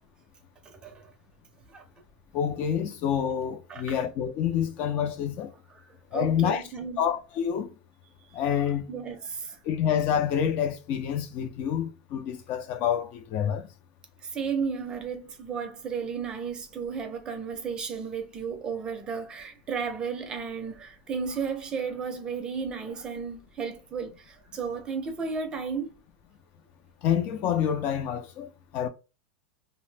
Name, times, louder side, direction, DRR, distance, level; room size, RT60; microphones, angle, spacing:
voice 1, 0.6-1.1 1.7-1.8 3.7-3.8 5.7-7.0 8.9-9.6 14.2-26.0, right 5 dB, 20° right, 0.5 m, -34 dB
voice 2, 2.3-5.5 6.1-6.6 7.0-7.7 8.3-8.9 9.6-13.7 27.0-28.9, left 9 dB, 40° left, 0.3 m, -27 dB
2.6 x 2.0 x 3.2 m
supercardioid pair, 150°, 4 cm